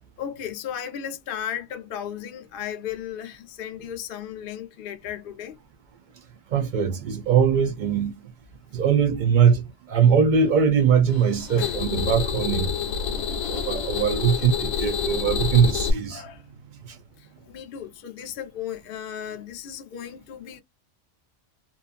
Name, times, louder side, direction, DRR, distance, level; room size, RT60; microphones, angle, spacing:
voice 1, 0.2-5.6 11.6-11.8 12.7-12.8 14.8-14.9 16.1-16.5 17.2-20.6, left 9 dB, 60° left, 0.6 m, -35 dB
voice 2, 6.5-8.1 8.7-12.8 13.5-16.2 16.9-17.0, right 7 dB, 70° right, 0.4 m, -21 dB
sound 1, 11.1-15.9, left 6 dB, 85° left, 1.0 m, -28 dB
sound 2, 11.1-19.0, right 4 dB, 40° right, 1.1 m, -49 dB
2.5 x 2.4 x 2.4 m
omnidirectional pair, 1.4 m